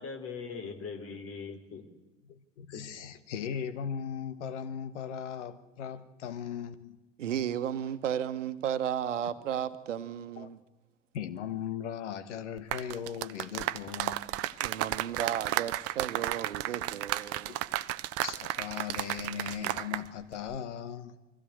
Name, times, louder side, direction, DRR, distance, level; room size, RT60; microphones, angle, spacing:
voice 1, 0.0-1.9 2.7-3.1, left 5 dB, 35° left, 3.3 m, -41 dB
voice 2, 2.2-7.0 10.4-10.5 11.1-14.3 16.4-16.5 17.5-17.6 18.2-21.2, left 8 dB, 65° left, 1.4 m, -38 dB
voice 3, 7.2-10.6 14.6-17.6, right 9 dB, 75° right, 1.3 m, -34 dB
sound 1, 12.6-20.1 20.3-20.6, right 15 dB, 40° right, 0.8 m, -33 dB
23.5 x 16.0 x 7.9 m
figure-of-eight pair, 85°, 38 cm